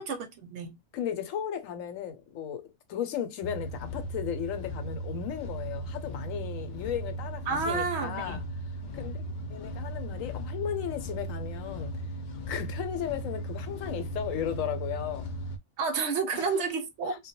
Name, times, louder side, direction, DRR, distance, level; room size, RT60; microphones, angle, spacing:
voice 1, 0.0-0.8 7.5-8.5 15.8-17.1, right 5 dB, 65° right, 0.8 m, -30 dB
voice 2, 0.9-8.4 8.9-9.2 9.5-11.9 12.5-15.3 16.3-16.6 17.1-17.3, left 9 dB, 85° left, 1.0 m, -35 dB
sound 1, 3.4-15.6, right 1 dB, 70° left, 0.4 m, -37 dB
2.2 x 2.1 x 2.8 m
omnidirectional pair, 1.3 m